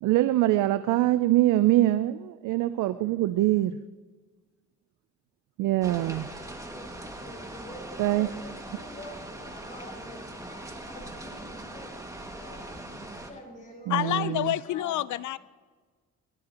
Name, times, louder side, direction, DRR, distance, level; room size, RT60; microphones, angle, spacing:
voice 1, 0.0-3.8 5.6-6.3 8.0-8.3 13.9-14.5, right 15 dB, 90° right, 0.5 m, -24 dB
sound 1, 5.8-13.3, right 1 dB, 10° right, 2.0 m, -41 dB
voice 2, 6.5-14.2 14.6-15.0, left 1 dB, 25° left, 6.4 m, -47 dB
voice 3, 13.9-15.4, left 14 dB, 75° left, 0.6 m, -28 dB
21.5 x 18.5 x 3.0 m
cardioid pair, 90°, 30 cm